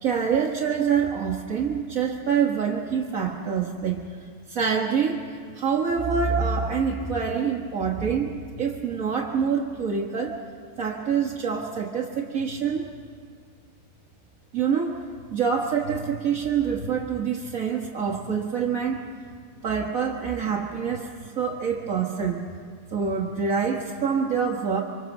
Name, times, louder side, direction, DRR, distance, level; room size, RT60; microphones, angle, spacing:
voice 1, 0.0-4.0 4.5-5.2 5.6-10.4 10.8-12.9 14.5-15.0 15.3-19.0 19.6-21.1 21.4-22.4 22.9-24.8, right 6 dB, 45° right, -1 dB, 1.1 m, -26 dB
25.0 x 25.0 x 7.2 m, 2.1 s
omnidirectional pair, 3.4 m